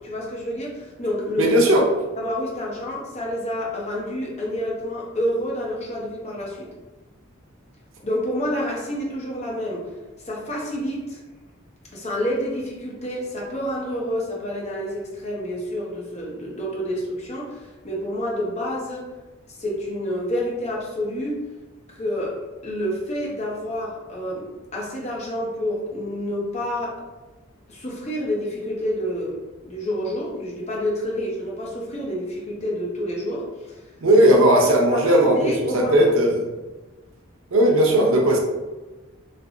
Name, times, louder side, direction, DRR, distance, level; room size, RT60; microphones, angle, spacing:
voice 1, 0.0-1.5 2.2-6.7 8.0-9.9 10.3-11.2 11.9-19.1 19.6-21.3 21.9-27.0 27.7-33.8 34.9-36.1, equal, 35° left, -3 dB, 0.8 m, -28 dB
voice 2, 1.4-1.8 34.0-36.3 37.5-38.4, right 1 dB, 85° right, 0 dB, 0.7 m, -17 dB
3.3 x 2.9 x 2.6 m, 1.2 s
head